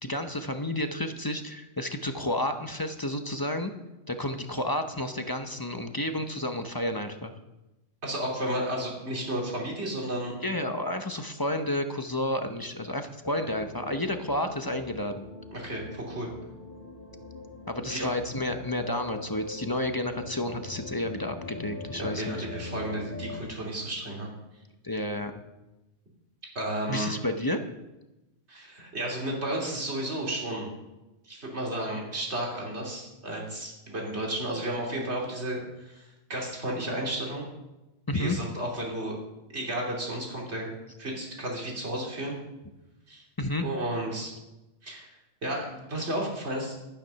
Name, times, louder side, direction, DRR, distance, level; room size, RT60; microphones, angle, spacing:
voice 1, 0.0-3.7 4.1-7.3 10.4-15.3 17.7-22.5 24.8-25.3 26.9-27.6 38.1-38.4 43.4-43.6, left 1 dB, 20° left, 6 dB, 0.7 m, -31 dB
voice 2, 8.0-10.3 15.5-16.3 17.9-18.1 22.0-24.3 26.5-27.1 28.5-30.7 31.2-36.0 36.3-37.4 38.1-39.2 39.5-40.7 41.0-42.3 43.1-43.2 43.6-44.3 44.8-45.1 45.4-46.8, right 1 dB, 60° right, -1 dB, 3.2 m, -32 dB
sound 1, 13.3-23.4, left 3 dB, 45° left, 2.2 m, -42 dB
12.5 x 9.3 x 5.7 m, 1.0 s
omnidirectional pair, 1.3 m